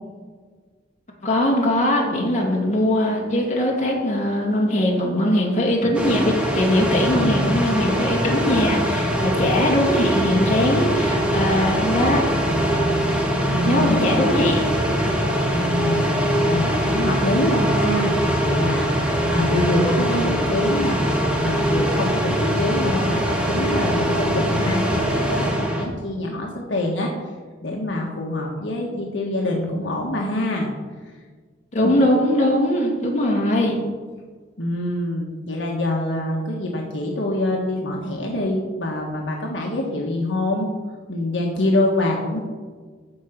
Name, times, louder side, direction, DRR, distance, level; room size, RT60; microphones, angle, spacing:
voice 1, 1.2-12.2 13.6-14.7 31.7-33.8, left 1 dB, 40° left, -2 dB, 2.5 m, -21 dB
sound 1, 5.9-25.9, equal, 5° right, 1.5 m, -22 dB
voice 2, 13.4-14.2 15.5-18.2 18.4-21.0 21.4-27.1 27.6-30.7 34.6-40.7 41.1-42.4, left 1 dB, 70° left, -1 dB, 1.5 m, -25 dB
14.5 x 5.0 x 5.8 m, 1.5 s
head